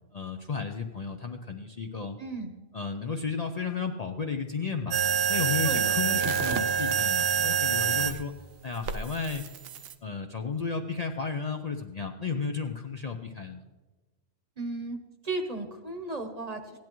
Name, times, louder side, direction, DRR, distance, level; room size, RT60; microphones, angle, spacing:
voice 1, 0.1-2.2 2.7-5.0 5.3-8.3 8.6-9.4 10.0-13.6, left 5 dB, 45° left, 4 dB, 0.6 m, -33 dB
voice 2, 2.2-2.6 5.6-7.0 14.6-15.0 15.2-16.8, right 3 dB, 40° right, 5 dB, 1.0 m, -36 dB
sound 1, 4.9-8.2 8.9-9.9, right 7 dB, 65° right, 0.8 m, -26 dB
16.0 x 10.5 x 3.0 m, 1.2 s
omnidirectional pair, 1.2 m